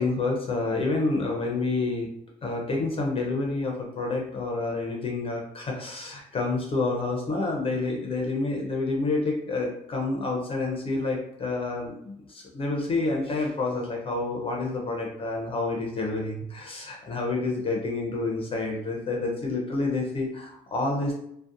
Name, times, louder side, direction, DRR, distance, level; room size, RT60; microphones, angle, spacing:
voice 1, 0.0-2.1 2.4-21.2, left 3 dB, 35° left, 0 dB, 0.5 m, -28 dB
2.6 x 2.0 x 2.4 m, 0.75 s
cardioid pair, 110°, 17 cm